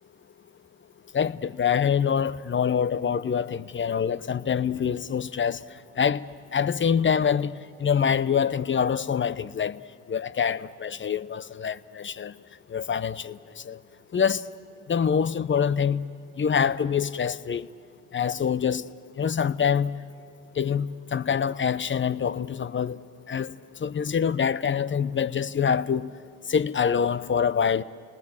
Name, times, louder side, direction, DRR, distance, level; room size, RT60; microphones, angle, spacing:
voice 1, 1.1-5.6 6.0-6.2 6.5-7.5 7.8-9.8 10.1-12.3 12.7-13.4 13.7-13.8 14.1-14.4 14.9-16.0 16.4-17.7 18.1-18.9 19.2-19.9 20.6-23.0 23.3-23.5 23.8-26.1 26.5-27.8, left 7 dB, 30° left, 0.8 m, -25 dB
28.0 x 19.5 x 7.3 m
hypercardioid pair, 60°, 38 cm